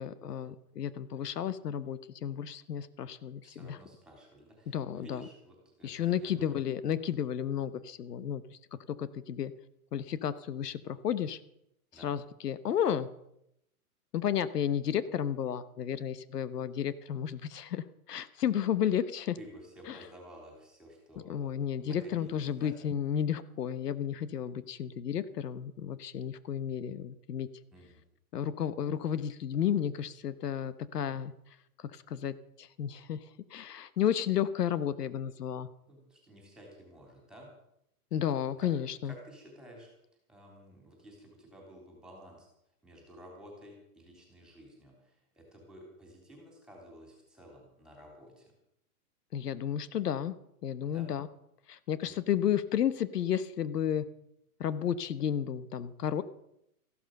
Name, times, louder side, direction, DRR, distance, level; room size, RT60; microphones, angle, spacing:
voice 1, 0.0-3.8 4.7-5.2 5.8-8.4 8.9-9.5 9.9-11.4 12.0-13.1 14.1-19.4 19.9-20.0 21.3-27.5 28.3-31.3 31.9-33.2 33.5-35.7 38.1-39.1 49.3-50.3 50.6-51.3 51.7-54.0 54.6-56.2, left 9 dB, 85° left, 15 dB, 1.1 m, -32 dB
voice 2, 3.4-6.6 11.9-12.2 19.4-22.7 27.7-28.0 35.9-37.5 38.6-38.7 39.0-39.9 40.3-42.5 42.8-48.5 50.9-51.1 52.0-52.1, equal, ahead, 1 dB, 3.3 m, -53 dB
14.5 x 12.0 x 6.5 m, 0.78 s
hypercardioid pair, 165°, 46 cm